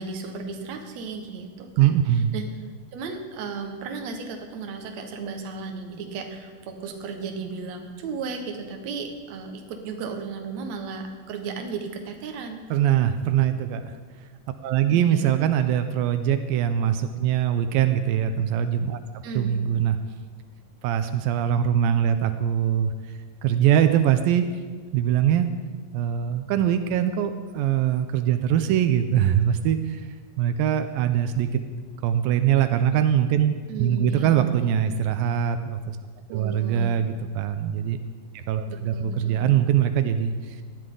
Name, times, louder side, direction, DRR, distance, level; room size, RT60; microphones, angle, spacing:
voice 1, 0.0-2.0 2.3-2.4 2.9-12.6 14.9-15.4 19.2-19.6 33.7-34.4 36.3-37.0 38.7-39.4, right 4 dB, 60° right, 4 dB, 2.3 m, -35 dB
voice 2, 1.8-2.3 12.7-13.9 14.6-19.0 19.3-20.0 20.8-22.9 23.4-24.4 24.9-25.5 25.9-30.0 30.4-31.6 32.0-33.5 33.8-36.0 36.3-38.0 38.3-40.6, right 10 dB, 85° right, 9 dB, 2.4 m, -22 dB
18.5 x 12.0 x 3.8 m, 1.5 s
omnidirectional pair, 4.0 m